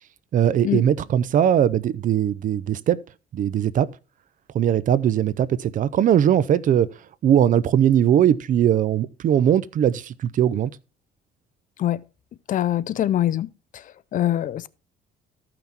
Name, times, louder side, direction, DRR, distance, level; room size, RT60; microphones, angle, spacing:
voice 1, 0.3-3.0 3.3-3.9 4.5-6.9 7.2-10.7, right 10 dB, 50° right, 0.6 m, -20 dB
voice 2, 12.5-13.5 13.7-13.8 14.1-14.7, left 12 dB, 50° left, 0.6 m, -23 dB
14.0 x 6.0 x 4.3 m
cardioid pair, 110°, 17 cm